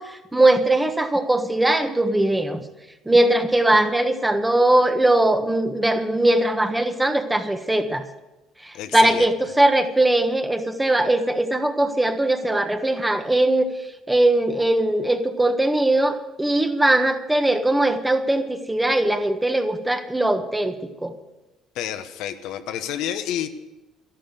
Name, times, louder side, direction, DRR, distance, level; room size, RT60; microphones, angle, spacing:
voice 1, 0.0-2.6 3.0-8.0 8.6-13.7 14.1-21.1, right 1 dB, 10° right, 7 dB, 1.4 m, -20 dB
voice 2, 8.7-9.3 21.7-23.5, left 10 dB, 75° left, 8 dB, 1.0 m, -29 dB
12.5 x 11.5 x 6.8 m, 1.0 s
supercardioid pair, 90°, 0 cm